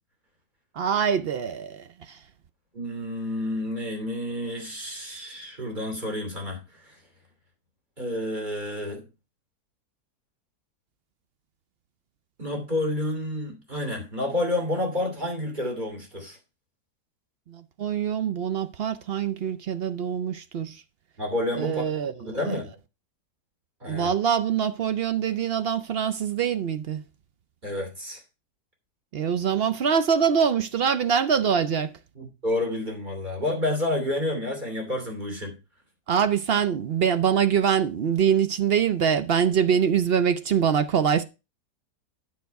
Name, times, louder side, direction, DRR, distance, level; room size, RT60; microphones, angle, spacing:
voice 1, 0.8-2.2 17.5-20.8 21.6-22.6 23.9-27.0 29.1-31.9 36.1-41.2, right 7 dB, 65° right, 0.6 m, -24 dB
voice 2, 2.7-7.0 8.0-9.0 12.4-16.4 21.2-22.6 23.8-24.1 27.6-28.2 32.1-35.5, left 1 dB, 30° right, 3.0 m, -29 dB
9.3 x 6.6 x 4.6 m
omnidirectional pair, 1.7 m